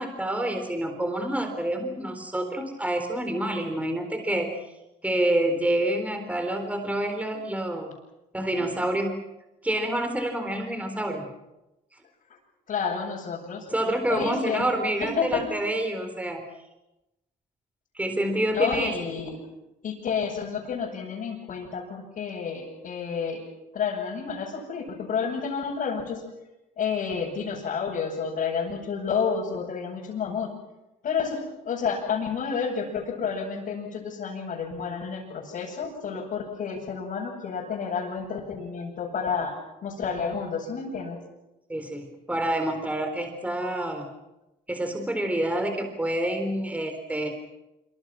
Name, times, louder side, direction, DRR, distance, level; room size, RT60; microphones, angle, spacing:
voice 1, 0.0-4.6 5.0-7.9 8.3-9.1 9.6-11.3 13.7-16.4 17.9-18.9 41.7-44.1 44.7-47.3, right 1 dB, 10° right, 5 dB, 3.9 m, -27 dB
voice 2, 12.7-13.7 14.1-14.6 15.0-15.4 18.5-19.4 19.8-23.4 23.7-26.2 26.8-30.5 31.0-39.5 39.8-41.2, left 6 dB, 55° left, -6 dB, 7.4 m, -30 dB
26.5 x 25.5 x 6.2 m, 0.97 s
cardioid pair, 110°, 17 cm